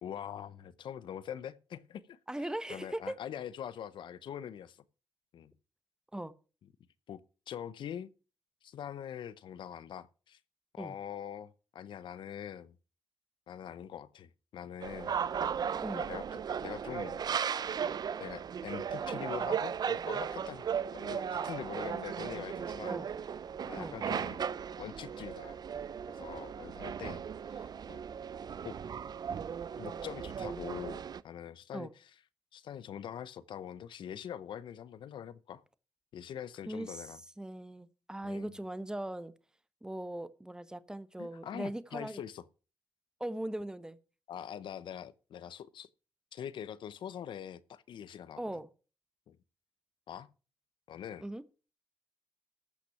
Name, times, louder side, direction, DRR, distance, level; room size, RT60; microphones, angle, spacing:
voice 1, 0.0-2.2 2.7-4.8 5.3-5.5 7.1-7.2 7.5-8.1 8.6-10.4 10.7-12.8 13.5-15.1 15.9-16.2 16.6-17.2 18.2-20.6 20.9-23.0 23.6-24.4 24.8-25.6 26.1-27.2 27.5-28.0 28.6-28.8 29.8-31.9 32.5-35.6 36.1-37.2 38.2-38.5 41.2-42.4 44.3-45.9 46.3-48.4 49.3-49.4 50.1-50.3 50.9-51.2, left 9 dB, 75° left, 0.7 m, -43 dB
voice 2, 2.3-3.1 6.1-6.3 10.8-11.0 15.8-16.1 22.9-23.1 23.8-24.0 31.7-31.9 36.7-39.3 39.8-42.2 43.2-44.0 48.4-48.7 51.2-51.4, right 1 dB, 10° right, 1.0 m, -39 dB
sound 1, 14.8-31.2, right 7 dB, 55° right, 0.5 m, -36 dB
14.5 x 6.0 x 5.8 m
cardioid pair, 65°, 8 cm